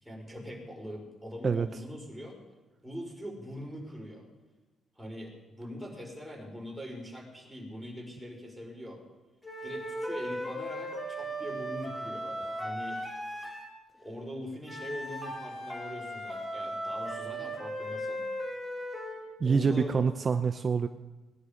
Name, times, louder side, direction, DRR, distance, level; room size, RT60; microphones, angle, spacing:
voice 1, 0.0-2.4 2.8-4.3 4.9-9.0 9.6-13.0 13.9-18.3 19.4-20.1, equal, 5° right, -1 dB, 4.9 m, -42 dB
sound 1, 9.4-13.7 14.6-19.3, equal, 15° left, 3.3 m, -37 dB
voice 2, 19.4-20.9, right 5 dB, 40° right, 9 dB, 0.6 m, -26 dB
18.5 x 11.0 x 5.1 m, 1.2 s
cardioid pair, 90°, 0 cm